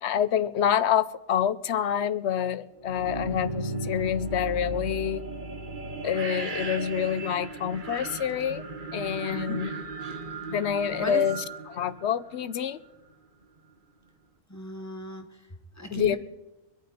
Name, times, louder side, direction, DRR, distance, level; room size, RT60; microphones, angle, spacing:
voice 1, 0.0-5.2 6.0-8.6 8.9-9.8 10.5-11.4 11.7-12.8 15.9-16.2, left 9 dB, 75° left, 15 dB, 1.0 m, -27 dB
sound 1, 2.8-12.6, right 2 dB, 45° right, 1.3 m, -36 dB
voice 2, 9.3-9.7 11.0-11.3 14.5-15.4 15.8-16.2, left 1 dB, 15° left, 6 dB, 1.3 m, -36 dB
24.5 x 9.2 x 4.4 m, 0.99 s
omnidirectional pair, 1.2 m